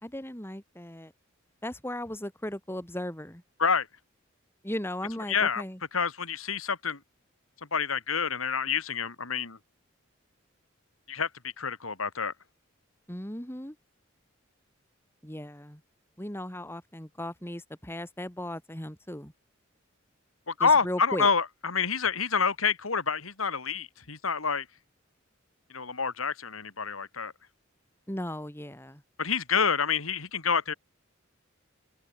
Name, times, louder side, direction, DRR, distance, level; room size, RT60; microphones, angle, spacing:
voice 1, 0.0-1.1 1.6-3.4 4.6-5.8 13.1-13.8 15.2-15.8 16.2-19.3 20.6-21.3 28.1-29.0, left 1 dB, 10° left, 3.1 m, -37 dB
voice 2, 5.3-5.6 5.9-7.0 7.7-9.6 11.1-12.3 20.5-24.7 25.7-27.3 29.2-30.7, left 5 dB, 90° left, 2.7 m, -28 dB
open air
head